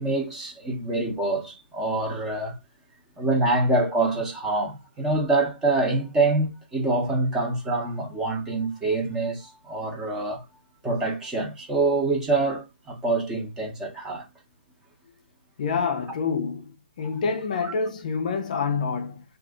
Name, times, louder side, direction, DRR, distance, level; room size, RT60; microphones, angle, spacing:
voice 1, 0.0-2.5 3.2-10.4 10.8-14.2 17.6-17.7, right 2 dB, 10° right, 0.8 m, -25 dB
voice 2, 15.6-16.7 17.0-19.2, left 5 dB, 40° left, 0.4 m, -27 dB
2.4 x 2.4 x 3.6 m
hypercardioid pair, 160°, 6 cm